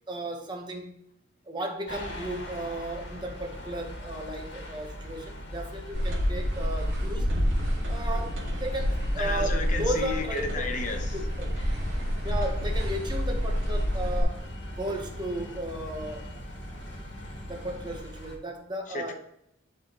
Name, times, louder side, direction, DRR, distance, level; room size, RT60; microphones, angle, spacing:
voice 1, 0.1-0.9 1.5-7.4 7.9-10.6 11.1-11.5 12.2-14.5 14.8-16.3 17.5-19.1, right 1 dB, 20° right, 2 dB, 1.0 m, -35 dB
sound 1, 1.9-18.4, equal, 60° left, 1.6 m, -41 dB
sound 2, 5.9-14.2, equal, 75° right, 2.0 m, -28 dB
sound 3, 7.2-18.0, equal, 5° left, 1.3 m, -44 dB
voice 2, 9.2-11.1 18.9-19.1, left 3 dB, 40° left, 5 dB, 0.8 m, -32 dB
10.5 x 4.4 x 2.9 m, 0.78 s
head